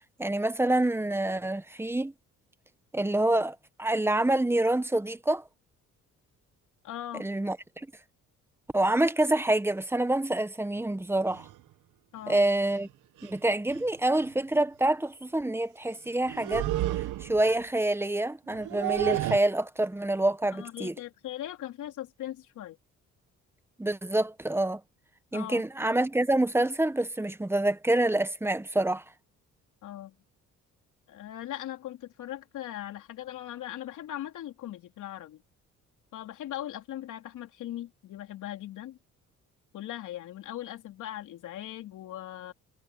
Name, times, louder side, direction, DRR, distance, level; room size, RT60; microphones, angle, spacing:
voice 1, 0.2-2.1 2.9-5.4 7.2-7.6 8.7-11.5 12.3-12.9 13.2-16.7 17.2-20.9 23.8-24.8 25.3-29.0, right 1 dB, 10° right, 1.1 m, -27 dB
voice 2, 6.8-7.3 12.1-12.5 20.5-22.8 25.3-25.6 29.8-30.1 31.1-35.4 36.1-39.0 39.7-42.5, left 12 dB, 80° left, 3.4 m, -39 dB
sound 1, 11.3-11.5 12.7-12.8 13.2-13.4 13.7-13.9 16.2-17.5 18.5-19.4, right 16 dB, 85° right, 1.2 m, -31 dB
cardioid pair, 90°, 30 cm